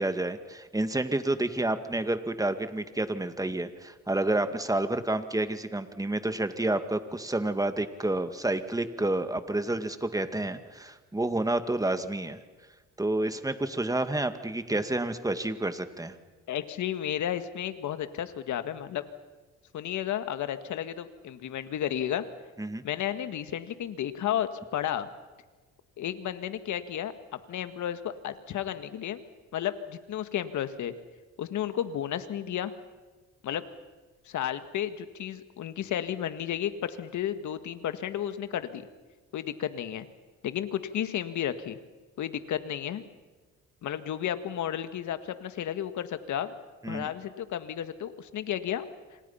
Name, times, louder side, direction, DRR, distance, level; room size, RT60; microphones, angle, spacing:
voice 1, 0.0-12.4 13.0-16.1 22.6-22.8 46.8-47.1, right 2 dB, 10° right, 9 dB, 2.0 m, -29 dB
voice 2, 16.5-19.0 19.7-22.2 22.8-25.1 26.0-29.2 29.5-30.9 31.4-32.7 33.4-33.6 34.3-38.9 39.3-40.1 40.4-41.8 42.2-43.0 43.8-46.5 46.9-48.9, left 10 dB, 75° left, 10 dB, 1.8 m, -32 dB
28.0 x 26.5 x 5.7 m, 1.3 s
cardioid pair, 90°, 30 cm